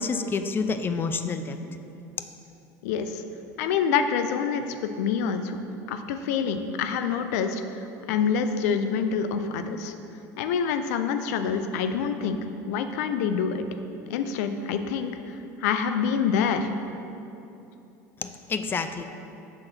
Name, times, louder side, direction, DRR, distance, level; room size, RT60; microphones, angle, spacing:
voice 1, 0.0-1.8 18.2-19.0, left 4 dB, 25° left, 9 dB, 0.4 m, -29 dB
voice 2, 2.8-3.2 3.6-5.6 5.9-7.6 8.1-9.9 10.4-12.4 12.6-13.7 14.1-15.1 15.6-16.7, left 6 dB, 80° left, 8 dB, 0.5 m, -26 dB
5.9 x 3.9 x 6.0 m, 2.8 s
supercardioid pair, 100°, 9 cm